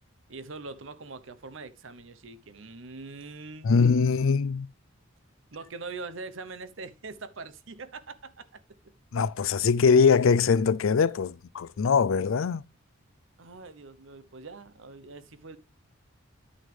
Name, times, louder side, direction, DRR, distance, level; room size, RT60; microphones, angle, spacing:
voice 1, 0.3-3.8 5.5-8.6 13.4-15.6, right 3 dB, 70° right, 0.9 m, -42 dB
voice 2, 3.6-4.7 9.1-12.6, left 5 dB, 75° left, 0.4 m, -22 dB
11.0 x 6.3 x 3.3 m
head